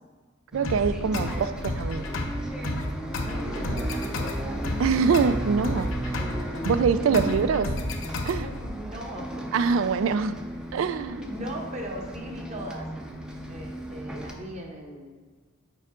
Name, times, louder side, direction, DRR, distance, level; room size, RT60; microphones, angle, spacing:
Bus, 0.5-14.3, right 1 dB, 5° right, 0.5 m, -35 dB
voice 1, 0.5-2.1 4.8-6.2 6.7-7.7 8.3-8.5 9.5-10.4 10.7-11.2, right 5 dB, 70° right, 0.3 m, -24 dB
sound 1, 0.6-8.6, left 1 dB, 70° left, 0.7 m, -32 dB
voice 2, 3.2-4.8 6.6-6.8 7.1-7.9 8.4-9.6 11.1-12.9 13.5-15.1, equal, 35° right, 0.9 m, -39 dB
6.8 x 4.7 x 3.7 m
head